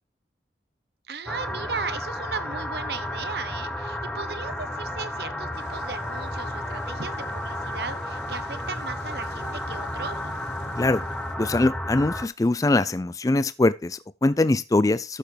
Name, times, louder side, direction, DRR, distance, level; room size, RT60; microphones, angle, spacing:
voice 1, 1.1-10.3, right 4 dB, 65° right, 1.0 m, -36 dB
sound 1, 1.3-12.3, left 1 dB, 5° left, 0.8 m, -32 dB
sound 2, 5.5-11.4, left 2 dB, 75° left, 1.6 m, -47 dB
voice 2, 11.4-15.2, left 2 dB, 20° left, 0.4 m, -22 dB
13.0 x 6.8 x 3.3 m
head